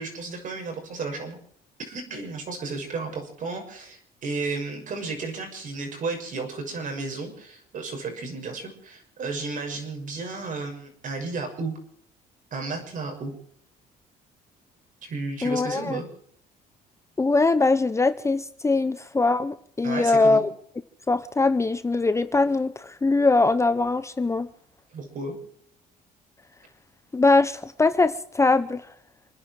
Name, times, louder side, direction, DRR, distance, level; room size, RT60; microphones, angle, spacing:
voice 1, 0.0-1.4 1.9-11.7 12.5-13.3 15.0-16.1 19.8-20.4 24.9-25.4, right 3 dB, 50° right, 6.4 m, -33 dB
voice 2, 15.4-16.0 17.2-20.5 21.1-24.5 27.1-28.9, left 3 dB, 15° left, 0.8 m, -22 dB
28.5 x 10.5 x 4.7 m
cardioid pair, 110°, 17 cm